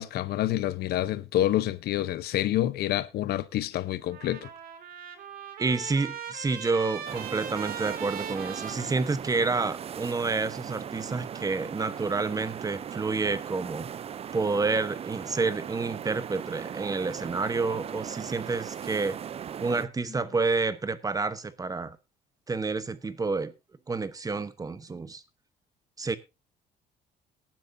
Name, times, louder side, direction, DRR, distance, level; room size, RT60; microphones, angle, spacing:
voice 1, 0.0-4.5, left 13 dB, 70° left, 0.8 m, -28 dB
Trumpet, 4.0-9.6, right 8 dB, 60° right, 2.4 m, -40 dB
voice 2, 5.6-13.9 14.3-19.2 19.6-22.0 22.5-23.5 23.9-25.2 26.0-26.1, right 4 dB, 20° right, 1.0 m, -29 dB
sound 1, 7.1-19.9, right 8 dB, 35° right, 0.5 m, -38 dB
Sigh, 19.9-20.5, left 6 dB, 30° left, 2.8 m, -50 dB
18.0 x 10.5 x 2.7 m
cardioid pair, 110°, 17 cm